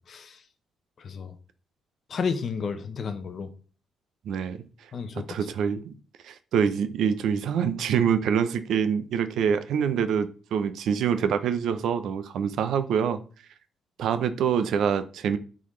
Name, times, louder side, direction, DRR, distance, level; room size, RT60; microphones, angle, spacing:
voice 1, 2.1-3.5 4.9-5.4, left 5 dB, 40° left, 0.7 m, -31 dB
voice 2, 4.3-4.6 5.1-5.9 6.2-13.2 14.0-15.4, right 7 dB, 70° right, 0.6 m, -25 dB
11.5 x 3.9 x 3.2 m
cardioid pair, 160°, 0 cm